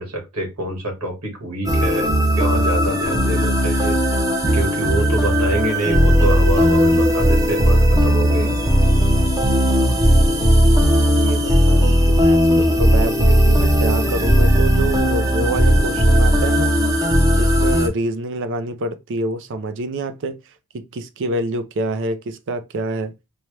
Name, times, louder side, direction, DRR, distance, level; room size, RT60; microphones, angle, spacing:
voice 1, 0.0-2.1 2.4-4.0 4.5-8.5, right 1 dB, 75° right, 1.6 m, -26 dB
sound 1, 1.7-17.9, equal, 15° right, 0.7 m, -16 dB
voice 2, 11.2-16.7 17.3-20.4 20.7-23.1, right 2 dB, 55° right, 0.5 m, -27 dB
4.4 x 2.2 x 3.1 m
head